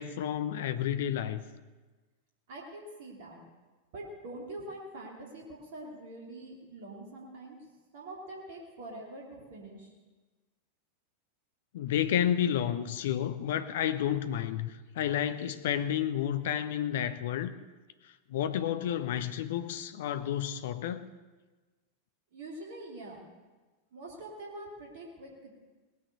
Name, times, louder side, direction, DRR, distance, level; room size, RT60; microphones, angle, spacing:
voice 1, 0.0-1.4 11.7-17.5 18.3-21.1, left 10 dB, 55° left, 11 dB, 0.9 m, -31 dB
voice 2, 2.5-3.4 3.9-7.7 7.9-9.9 22.3-23.3 23.9-25.5, right 1 dB, 55° right, -1 dB, 3.0 m, -44 dB
18.5 x 9.4 x 6.8 m, 1.3 s
figure-of-eight pair, 90°, 0 cm